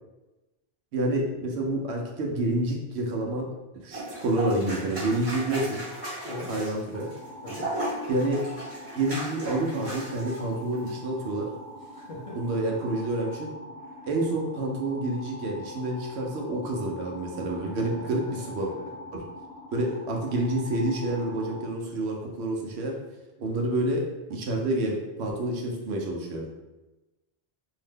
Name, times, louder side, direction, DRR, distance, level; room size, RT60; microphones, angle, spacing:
voice 1, 0.9-3.5 3.8-5.8 6.5-7.1 8.1-8.4 8.9-11.5 12.4-13.5 14.1-18.7 19.1-19.2 19.7-23.0 23.4-24.0 24.3-26.5, right 1 dB, 80° right, 0 dB, 0.9 m, -28 dB
sound 1, 3.9-10.4 10.7-10.9, right 1 dB, 35° right, 1.1 m, -36 dB
sound 2, 6.9-21.7, left 1 dB, 90° left, 1.0 m, -43 dB
voice 2, 11.9-12.4 17.6-18.1, left 2 dB, 45° left, -5 dB, 0.4 m, -40 dB
2.7 x 2.1 x 3.3 m, 1.1 s
omnidirectional pair, 1.1 m